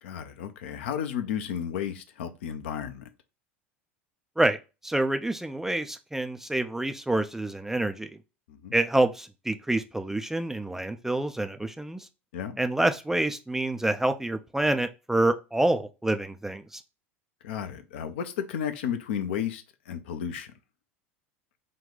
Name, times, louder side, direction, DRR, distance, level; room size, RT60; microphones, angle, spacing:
voice 1, 0.0-3.1 8.5-8.7 12.3-12.6 17.4-20.5, left 8 dB, 65° left, 0.5 m, -33 dB
voice 2, 4.8-8.2 8.7-12.1 12.6-16.8, right 1 dB, 5° right, 0.3 m, -27 dB
3.7 x 2.3 x 3.8 m
figure-of-eight pair, 75°, 7 cm